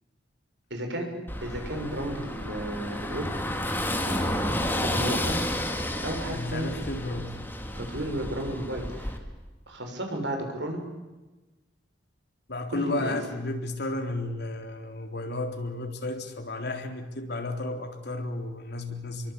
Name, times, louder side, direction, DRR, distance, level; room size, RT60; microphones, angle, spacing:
voice 1, 0.7-1.1 1.4-3.3 4.0-5.4 6.0-6.7 7.8-9.2 9.7-10.8 12.7-13.1, right 1 dB, 75° right, 6.7 m, -33 dB
Car passing by / Engine, 1.3-9.2, left 1 dB, 10° left, 3.1 m, -31 dB
voice 2, 6.3-7.4 12.5-19.3, left 2 dB, 65° left, 3.8 m, -33 dB
28.5 x 23.5 x 8.5 m
head